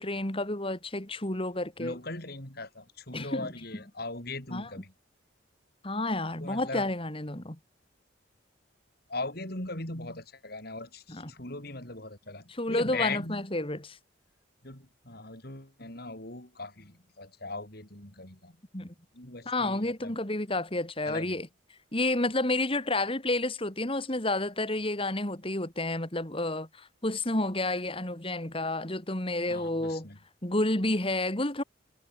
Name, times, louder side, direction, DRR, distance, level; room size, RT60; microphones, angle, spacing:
voice 1, 0.0-2.0 3.1-3.5 4.5-4.7 5.8-7.6 11.1-11.3 12.6-14.0 18.7-18.9 19.4-21.5 21.9-30.1 30.4-31.6, left 2 dB, 30° left, 3.1 m, -30 dB
voice 2, 1.8-4.9 6.4-6.9 9.1-13.5 14.6-18.6 19.1-20.2 21.0-21.4 29.5-30.2, left 3 dB, 55° left, 5.4 m, -39 dB
head